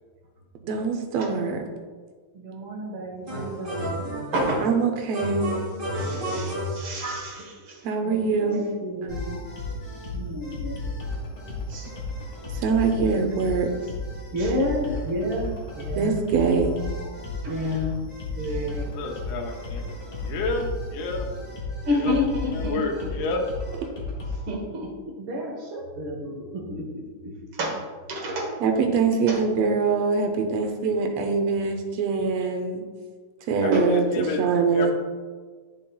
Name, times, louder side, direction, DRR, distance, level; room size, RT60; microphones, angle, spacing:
voice 1, 0.6-1.6 4.6-5.6 7.8-8.6 9.0-9.2 12.5-13.7 15.9-16.8 28.6-32.8 33.5-34.9, right 5 dB, 80° right, 3 dB, 1.5 m, -23 dB
voice 2, 2.3-3.9 4.3-4.7 6.0-9.4 10.1-10.8 11.7-11.9 12.9-13.2 14.3-16.2 17.4-18.0 18.4-18.9 21.8-23.1 24.5-28.6 29.3-29.4 33.7-34.0 34.4-34.5, left 1 dB, 55° right, -2 dB, 1.5 m, -30 dB
sound 1, 3.3-4.8 5.1-7.3, right 1 dB, 30° right, 1.0 m, -30 dB
sound 2, 9.1-24.4, left 2 dB, 40° left, 1.0 m, -34 dB
voice 3, 18.9-20.0 20.2-21.3 21.8-22.1 22.5-23.5 33.6-34.4 34.7-34.9, left 3 dB, 80° left, 1 dB, 2.3 m, -30 dB
10.5 x 5.3 x 2.3 m, 1.5 s
omnidirectional pair, 3.7 m